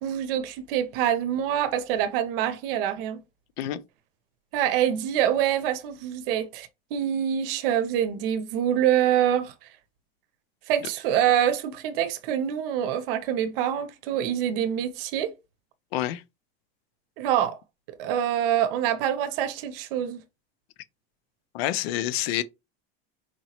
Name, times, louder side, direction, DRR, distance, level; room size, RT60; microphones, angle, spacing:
voice 1, 0.0-3.2 4.5-9.5 10.7-15.3 17.2-17.6 17.9-20.2, right 10 dB, 65° right, 0.7 m, -25 dB
voice 2, 15.9-16.2 21.5-22.4, left 13 dB, 85° left, 0.6 m, -27 dB
4.5 x 2.9 x 2.9 m
supercardioid pair, 170°, 30 cm